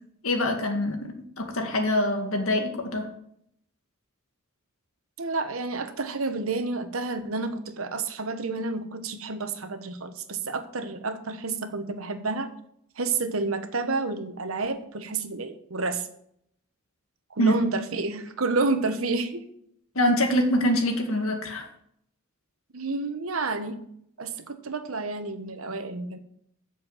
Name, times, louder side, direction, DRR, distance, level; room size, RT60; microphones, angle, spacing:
voice 1, 0.2-3.0 17.4-17.5 20.0-21.7, left 1 dB, 75° left, 3 dB, 1.9 m, -24 dB
voice 2, 5.2-12.5 13.0-16.1 17.3-19.5 22.7-23.8 24.2-26.2, right 3 dB, 75° right, 8 dB, 1.1 m, -30 dB
8.0 x 6.7 x 7.5 m, 0.71 s
head